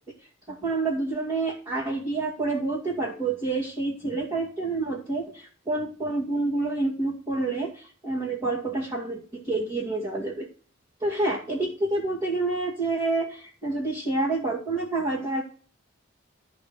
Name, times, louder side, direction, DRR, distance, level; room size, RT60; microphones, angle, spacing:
voice 1, 0.5-10.5 11.0-15.4, right 2 dB, 20° right, -8 dB, 2.4 m, -28 dB
13.5 x 4.8 x 6.7 m, 0.40 s
head